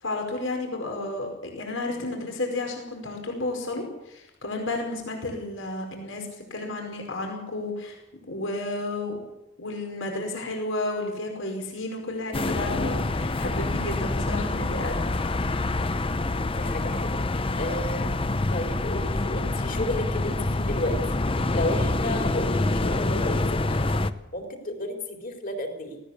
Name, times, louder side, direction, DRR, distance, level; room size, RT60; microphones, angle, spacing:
voice 1, 0.0-8.0 8.3-9.2 9.6-15.2, left 2 dB, 80° left, 2 dB, 5.0 m, -32 dB
sound 1, 12.3-24.1, left 2 dB, 25° left, 0.8 m, -26 dB
voice 2, 16.5-17.2 17.6-18.2 18.5-21.0 21.5-23.9 24.3-26.0, left 1 dB, 45° left, 3 dB, 4.2 m, -32 dB
19.0 x 17.5 x 8.4 m, 0.94 s
head